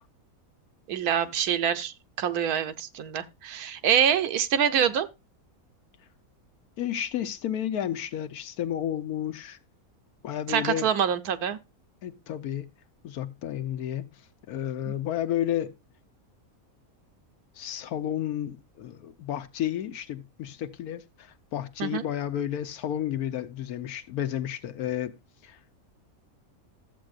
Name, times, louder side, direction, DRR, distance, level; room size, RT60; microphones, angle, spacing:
voice 1, 0.9-5.1 10.5-11.6 21.8-22.0, right 8 dB, 85° right, 1.3 m, -25 dB
voice 2, 6.8-9.6 10.2-10.9 12.0-12.7 13.0-14.1 14.5-15.7 17.5-25.1 25.4-25.6, left 11 dB, 90° left, 1.3 m, -31 dB
13.5 x 7.7 x 2.4 m
omnidirectional pair, 1.5 m